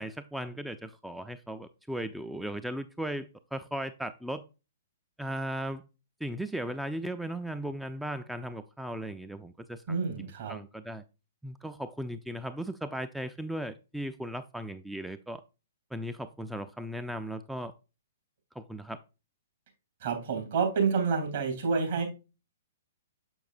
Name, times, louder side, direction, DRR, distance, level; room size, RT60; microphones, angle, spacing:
voice 1, 0.0-4.4 5.2-5.8 6.2-11.0 11.4-15.4 15.9-17.7 18.6-19.0, right 1 dB, 5° right, 0.3 m, -37 dB
voice 2, 9.9-10.6 20.0-22.0, right 5 dB, 55° right, 2.9 m, -28 dB
6.9 x 6.2 x 2.5 m
figure-of-eight pair, 115°, 0 cm